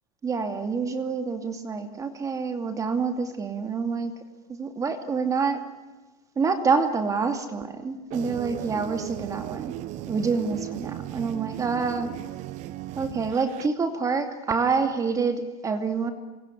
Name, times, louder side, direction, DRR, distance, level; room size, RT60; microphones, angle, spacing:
voice 1, 0.2-4.1 4.5-5.6 6.4-9.8 10.1-12.1 13.0-16.1, right 5 dB, 15° right, 7 dB, 2.5 m, -27 dB
sound 1, 8.1-13.7, right 15 dB, 40° right, 0.9 m, -36 dB
26.5 x 22.5 x 10.0 m, 1.1 s
supercardioid pair, 150°, 19 cm